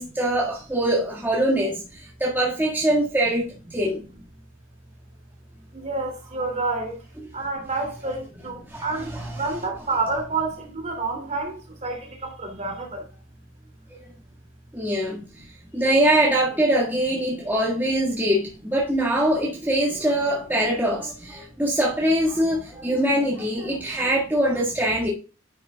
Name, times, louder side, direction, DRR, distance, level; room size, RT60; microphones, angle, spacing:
voice 1, 0.0-4.0 8.1-8.2 8.7-9.3 14.7-15.2 15.7-25.1, right 1 dB, 10° right, 1.7 m, -23 dB
voice 2, 5.7-7.0 7.3-13.1, right 3 dB, 35° right, 2.7 m, -29 dB
9.9 x 6.8 x 2.3 m
head